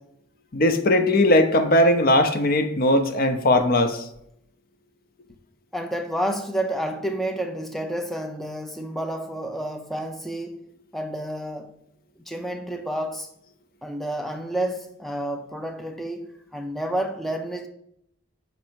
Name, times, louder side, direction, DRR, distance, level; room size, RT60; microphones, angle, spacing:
voice 1, 0.5-4.0, left 1 dB, 50° left, 0.7 m, -19 dB
voice 2, 5.7-10.6 10.9-11.7 12.3-13.3 13.8-17.7, right 1 dB, ahead, 0.4 m, -30 dB
6.0 x 5.3 x 4.5 m
head